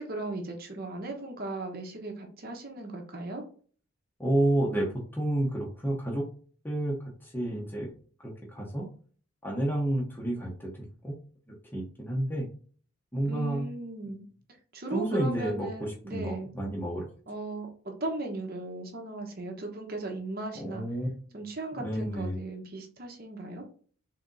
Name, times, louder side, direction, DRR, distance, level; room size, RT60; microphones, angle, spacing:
voice 1, 0.0-3.4 13.2-14.2 14.7-16.5 17.3-20.9 21.3-23.6, right 2 dB, 45° right, 2 dB, 0.9 m, -37 dB
voice 2, 4.2-4.9 5.1-6.2 6.6-7.9 8.2-8.9 9.4-10.7 11.0-11.1 11.5-12.5 13.1-13.7 14.9-17.1 20.5-21.4 21.8-22.4, right 1 dB, 10° left, -3 dB, 0.9 m, -30 dB
3.8 x 3.4 x 3.9 m, 0.43 s
head